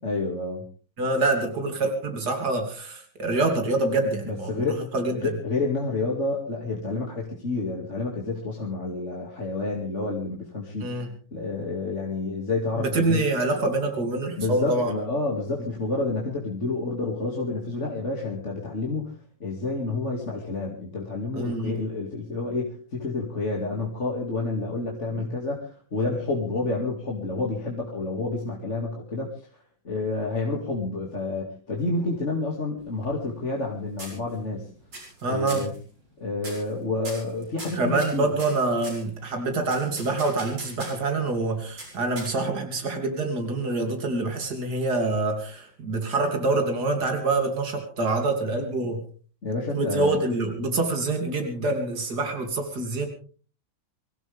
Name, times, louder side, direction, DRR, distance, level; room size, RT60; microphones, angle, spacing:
voice 1, 0.0-0.6 4.2-4.8 5.2-10.9 11.3-13.2 14.4-19.1 19.4-29.3 29.8-34.7 35.3-35.7 36.2-38.3 48.8-48.9 49.4-50.2, left 3 dB, 35° left, -1 dB, 2.7 m, -29 dB
voice 2, 1.0-4.7 4.9-5.2 10.8-11.1 12.8-14.9 21.3-21.8 25.1-25.3 35.2-35.6 37.7-49.0 49.7-53.1, right 2 dB, 55° right, 4 dB, 3.5 m, -26 dB
sound 1, 32.8-33.7 34.0-34.6 34.9-35.2 35.5-35.8 36.4-36.7 37.0-39.0 39.7-41.1 41.8-42.6, right 1 dB, 85° right, 7.6 m, -40 dB
25.0 x 16.5 x 3.5 m, 0.40 s
omnidirectional pair, 2.1 m